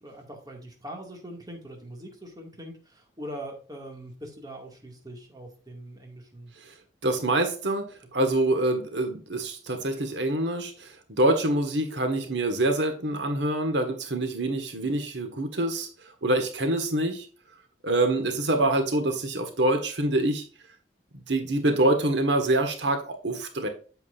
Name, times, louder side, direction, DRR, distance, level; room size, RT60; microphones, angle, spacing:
voice 1, 0.0-6.5, right 1 dB, 20° right, 2 dB, 2.0 m, -42 dB
voice 2, 7.0-15.9 16.2-17.2 17.8-20.4 21.3-23.7, right 1 dB, 80° right, 6 dB, 1.6 m, -25 dB
8.4 x 7.8 x 2.5 m, 0.38 s
head